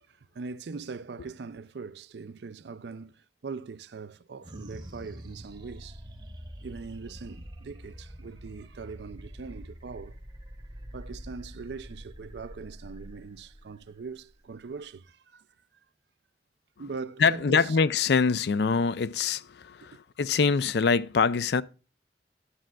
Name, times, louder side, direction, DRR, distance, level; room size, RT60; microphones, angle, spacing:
voice 1, 0.0-6.0 6.6-10.1 10.9-15.5 16.8-17.8 19.8-20.0, right 4 dB, 75° right, 0.5 m, -41 dB
sound 1, 4.4-15.1, equal, 25° right, 0.9 m, -45 dB
voice 2, 17.2-21.6, left 5 dB, 65° left, 0.4 m, -24 dB
11.5 x 7.5 x 2.3 m
head